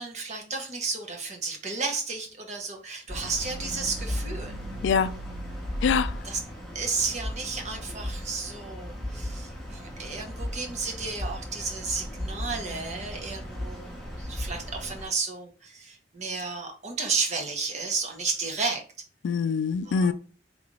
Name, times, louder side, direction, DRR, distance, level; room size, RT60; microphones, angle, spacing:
voice 1, 0.0-4.5 6.3-6.4 6.7-18.8 19.9-20.1, right 4 dB, 40° right, 0.9 m, -32 dB
sound 1, 3.1-15.1, equal, ahead, 0.8 m, -36 dB
voice 2, 4.8-5.2 5.8-6.3 19.2-20.1, left 6 dB, 85° left, 0.3 m, -25 dB
3.8 x 2.4 x 3.1 m
head